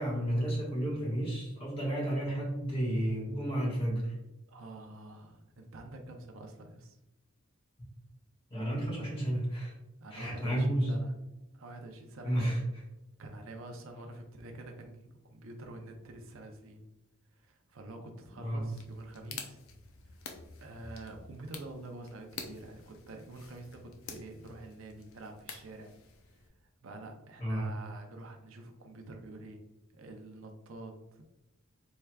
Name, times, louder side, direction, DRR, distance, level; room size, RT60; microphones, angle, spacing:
voice 1, 0.0-4.1 8.5-9.7 10.1-10.9 12.2-12.6 18.4-18.7 27.4-27.7, right 1 dB, 25° left, -4 dB, 1.4 m, -31 dB
voice 2, 4.5-7.0 10.0-11.1 11.5-12.5 13.2-16.8 17.4-19.6 20.1-20.2 20.6-25.9 26.8-29.6 29.9-31.2, right 2 dB, 65° right, 3 dB, 0.5 m, -47 dB
sound 1, 18.7-26.5, left 5 dB, 70° left, 0.5 m, -49 dB
4.4 x 3.4 x 2.2 m, 0.95 s
head